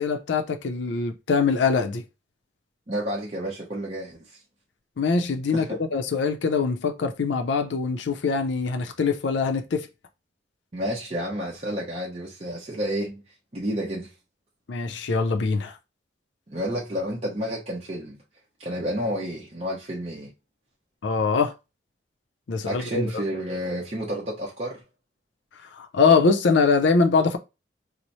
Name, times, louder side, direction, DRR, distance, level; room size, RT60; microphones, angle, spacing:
voice 1, 0.0-2.0 5.0-9.9 14.7-15.8 21.0-21.5 22.5-23.2 25.6-27.4, left 4 dB, 75° left, 0.5 m, -23 dB
voice 2, 2.9-4.4 5.5-5.8 10.7-13.2 13.5-14.1 16.5-18.2 18.6-20.3 22.6-24.8, equal, 35° right, 0.8 m, -30 dB
3.0 x 2.0 x 4.0 m
head